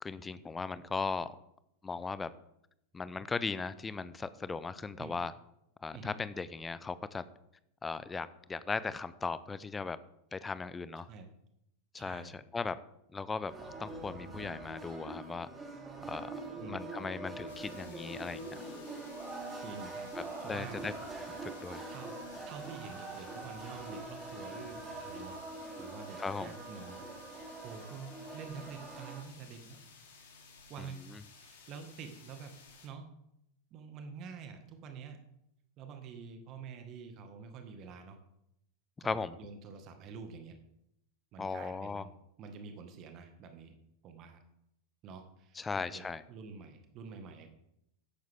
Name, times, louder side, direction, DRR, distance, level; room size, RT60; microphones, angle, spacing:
voice 1, 0.0-1.4 1.8-2.3 2.9-5.3 5.8-7.2 7.8-10.0 10.3-11.1 11.9-12.8 13.1-15.5 16.1-16.3 16.7-18.5 20.5-20.9 21.4-21.8 26.2-26.5 31.1-31.2 39.0-39.4 41.4-42.0 45.6-46.2, left 4 dB, 15° left, 16 dB, 0.6 m, -37 dB
voice 2, 11.0-11.3 12.0-12.4 16.6-16.8 19.6-20.8 21.9-22.1 22.5-25.4 25.8-27.0 27.6-29.8 30.7-31.0 31.4-32.5 32.8-33.1 33.7-35.2 35.8-38.2 39.0-40.6 41.3-43.7 44.0-44.4 45.0-45.6 45.9-47.5, right 5 dB, 35° right, 6 dB, 1.8 m, -47 dB
sound 1, 13.5-29.2, right 2 dB, 15° right, 3.1 m, -44 dB
sound 2, 17.5-32.9, left 4 dB, 60° left, 3.2 m, -57 dB
14.0 x 11.5 x 3.6 m, 0.79 s
figure-of-eight pair, 90°, 0 cm